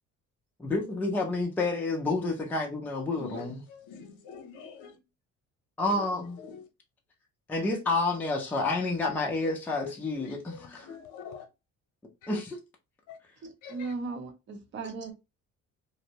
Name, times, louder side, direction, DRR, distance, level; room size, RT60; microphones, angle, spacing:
voice 1, 0.6-3.6 5.8-6.4 7.5-10.9 12.3-12.6, left 3 dB, 5° left, 0.4 m, -29 dB
voice 2, 3.1-5.0 5.9-6.0 6.4-6.6 9.8-9.9 10.5-11.5 12.2-12.4 13.1-13.2 13.6-13.9, left 6 dB, 85° left, 0.8 m, -44 dB
voice 3, 13.4-15.1, right 4 dB, 40° right, 0.7 m, -37 dB
2.6 x 2.0 x 2.8 m
cardioid pair, 155°, 29 cm